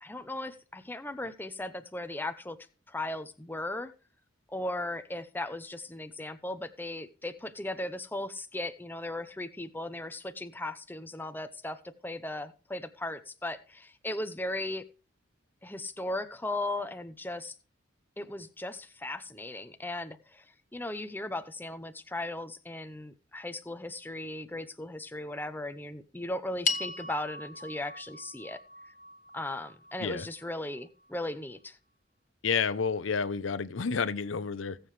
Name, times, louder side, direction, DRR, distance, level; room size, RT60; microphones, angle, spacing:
voice 1, 0.0-3.9 4.5-14.9 15.6-17.6 18.2-20.4 20.7-28.6 28.8-28.9 29.3-31.8, left 1 dB, 10° left, 0.7 m, -37 dB
sound 1, 26.6-31.1, left 4 dB, 40° left, 1.1 m, -38 dB
voice 2, 32.4-34.8, left 5 dB, 80° left, 0.7 m, -30 dB
19.5 x 7.6 x 3.3 m
head